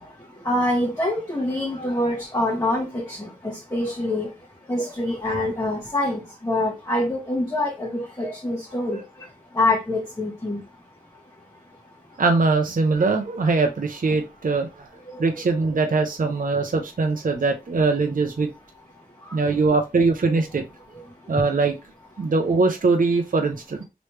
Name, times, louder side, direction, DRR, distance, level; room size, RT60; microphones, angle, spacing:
voice 1, 0.4-3.3 3.7-4.3 4.7-9.0 9.6-10.6, left 1 dB, 20° left, -4 dB, 1.1 m, -25 dB
voice 2, 12.2-14.9 15.2-18.5 19.3-20.6 21.3-21.7 22.2-23.8, right 3 dB, 60° right, 4 dB, 0.5 m, -22 dB
3.2 x 3.0 x 3.1 m, 0.25 s
wide cardioid pair, 45°, 16 cm